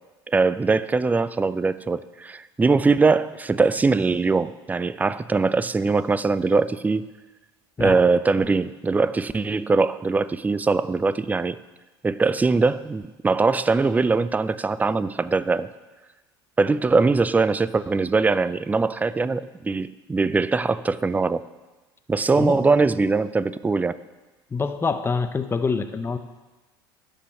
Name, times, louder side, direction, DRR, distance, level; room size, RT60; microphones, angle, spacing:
voice 1, 0.3-7.1 7.8-11.6 12.0-15.7 16.6-21.5 22.1-24.0, right 4 dB, 10° right, 16 dB, 0.4 m, -21 dB
voice 2, 22.3-22.6 24.5-26.2, left 4 dB, 20° left, 9 dB, 0.7 m, -25 dB
12.0 x 5.2 x 6.9 m, 1.2 s
hypercardioid pair, 80°, 13 cm